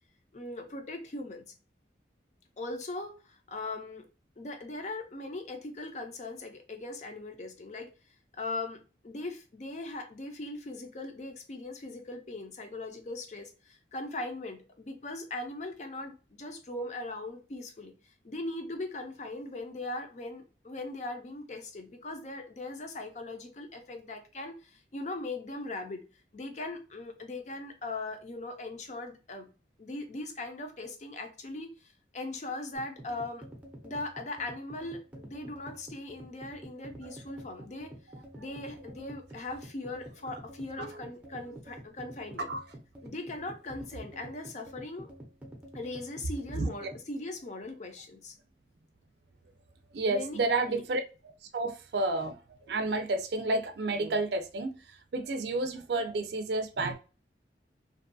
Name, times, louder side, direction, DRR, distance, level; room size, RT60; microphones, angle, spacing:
voice 1, 0.3-1.4 2.6-4.1 4.4-7.9 8.3-8.8 9.0-17.9 18.2-26.0 26.3-29.5 29.8-33.4 33.8-37.9 38.4-42.5 43.0-45.1 45.7-48.4 50.1-50.4 50.7-50.8, left 2 dB, 40° left, 0.5 m, -39 dB
sound 1, 32.7-47.1, right 1 dB, 5° right, 0.6 m, -48 dB
voice 2, 49.9-57.0, right 2 dB, 70° right, 0.4 m, -31 dB
2.6 x 2.2 x 2.5 m
head